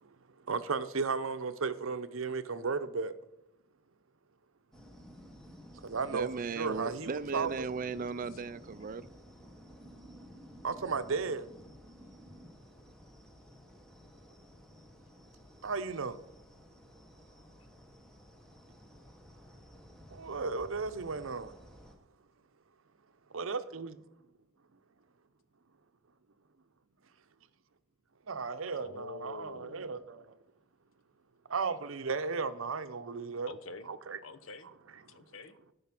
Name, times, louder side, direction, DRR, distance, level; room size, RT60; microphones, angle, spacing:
voice 1, 0.5-3.1 5.8-6.3 6.6-7.7 10.6-11.4 15.6-16.2 20.1-21.5 23.3-23.9 28.3-30.2 31.5-33.5 33.9-34.2, right 4 dB, 70° right, 0.7 m, -34 dB
sound 1, 4.7-22.0, equal, 5° left, 1.2 m, -54 dB
voice 2, 6.0-9.1, right 4 dB, 40° right, 0.4 m, -37 dB
voice 3, 28.7-30.0 33.5-33.9 34.2-34.7 35.1-35.6, left 4 dB, 70° left, 0.8 m, -47 dB
13.0 x 5.6 x 5.9 m
head